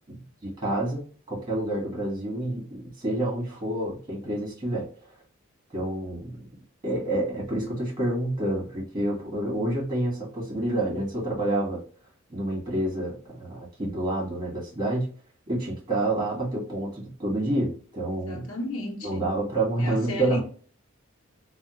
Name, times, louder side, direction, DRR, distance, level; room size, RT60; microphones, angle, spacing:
voice 1, 0.4-4.9 5.7-6.3 6.8-11.8 12.3-15.1 15.5-18.4 19.0-20.4, right 1 dB, 20° right, 1.4 m, -28 dB
voice 2, 18.1-19.3 19.8-20.4, left 1 dB, 85° left, 0.8 m, -34 dB
3.4 x 2.1 x 2.9 m
head